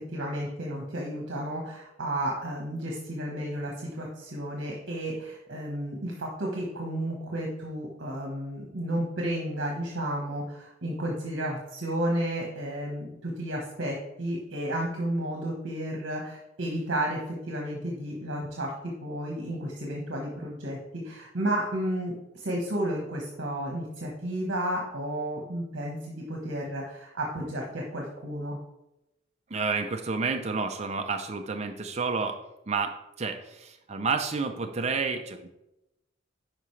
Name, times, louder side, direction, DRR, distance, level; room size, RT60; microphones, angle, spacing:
voice 1, 0.0-28.6, right 1 dB, 60° right, -1 dB, 1.3 m, -32 dB
voice 2, 29.5-32.4 32.7-35.5, right 4 dB, 35° right, 4 dB, 0.5 m, -30 dB
10.5 x 5.0 x 3.2 m, 0.89 s
head